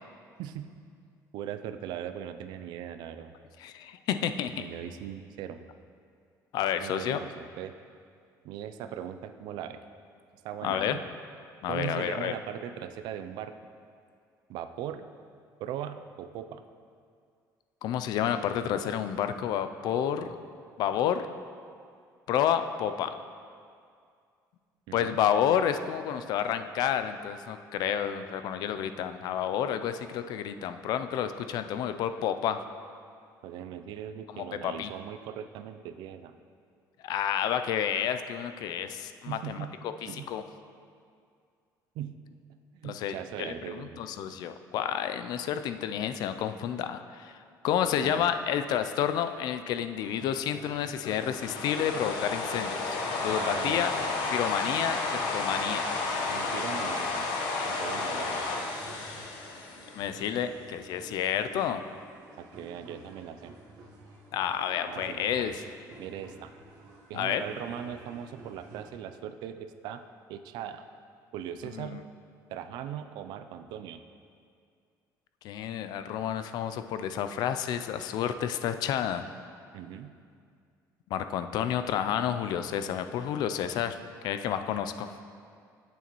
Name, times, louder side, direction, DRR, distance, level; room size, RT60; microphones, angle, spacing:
voice 1, 0.4-0.7 1.3-3.3 4.6-5.6 6.8-7.7 8.4-9.8 10.4-11.0 11.7-13.5 14.5-15.1 15.6-16.6 24.9-25.2 33.4-36.4 39.3-39.8 40.0-40.3 42.0-42.2 42.7-44.0 48.0-48.3 53.3-53.8 56.3-57.3 57.7-58.4 62.4-63.5 64.9-65.5 66.0-66.5 67.1-70.0 70.3-70.8 71.3-72.0 72.5-74.0 79.7-80.1, right 10 dB, 80° right, 10 dB, 0.4 m, -39 dB
voice 2, 3.6-4.6 6.5-7.2 10.6-11.0 11.6-12.3 17.8-20.4 20.8-21.3 22.3-23.2 24.9-32.6 34.3-34.9 37.0-40.4 42.8-53.0 53.2-53.9 54.3-55.9 60.0-61.8 64.3-65.6 67.1-67.4 71.7-72.0 75.4-79.2 81.1-84.0 84.2-85.1, left 9 dB, 65° left, 10 dB, 0.4 m, -30 dB
sound 1, 50.0-69.0, right 2 dB, 60° right, 1.1 m, -52 dB
sound 2, 51.0-60.3, left 3 dB, 80° left, 0.9 m, -32 dB
8.2 x 7.0 x 3.0 m, 2.3 s
cardioid pair, 145°, 7 cm